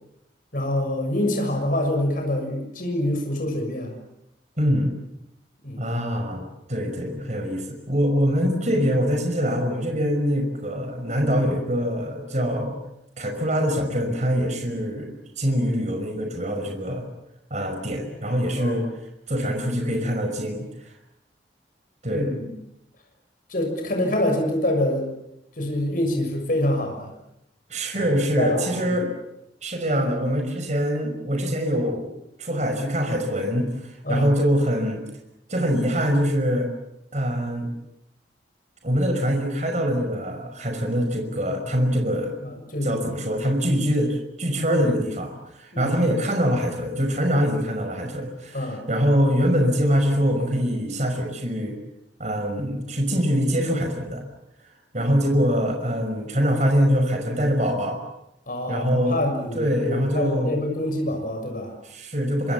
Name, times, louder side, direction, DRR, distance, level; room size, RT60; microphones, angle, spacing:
voice 1, 0.5-3.9 5.6-5.9 18.6-18.8 22.1-22.5 23.5-25.1 25.6-27.1 27.9-29.0 34.0-34.3 42.4-43.0 44.7-44.8 45.7-46.0 48.5-48.8 58.5-61.7, left 1 dB, 50° left, 3 dB, 6.7 m, -26 dB
voice 2, 4.6-4.9 5.8-12.8 13.2-17.1 17.5-18.9 19.3-20.7 22.0-22.4 27.7-29.1 29.6-32.1 32.4-35.0 35.5-36.7 37.1-37.7 38.8-42.4 42.8-51.8 52.2-54.2 54.9-58.0 58.7-59.2 59.5-60.5 61.8-62.5, equal, 40° right, 4 dB, 5.7 m, -24 dB
26.0 x 25.5 x 7.4 m, 0.84 s
head